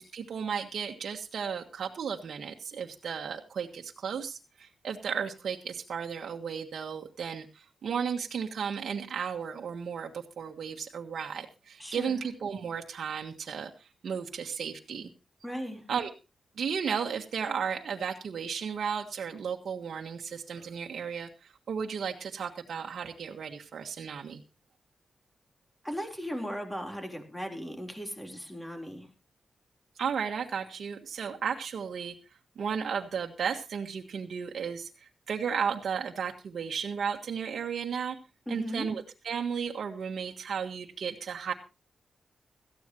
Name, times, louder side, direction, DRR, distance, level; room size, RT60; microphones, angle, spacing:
voice 1, 0.0-15.1 15.9-16.1 16.6-24.4 30.0-32.1 32.6-38.2 38.5-41.5, right 7 dB, 75° right, 2 dB, 1.5 m, -34 dB
voice 2, 11.8-12.3 15.4-15.8 25.8-29.1 38.5-38.9, equal, 10° left, 4 dB, 3.8 m, -37 dB
17.5 x 14.0 x 3.0 m, 0.28 s
cardioid pair, 80°, 0 cm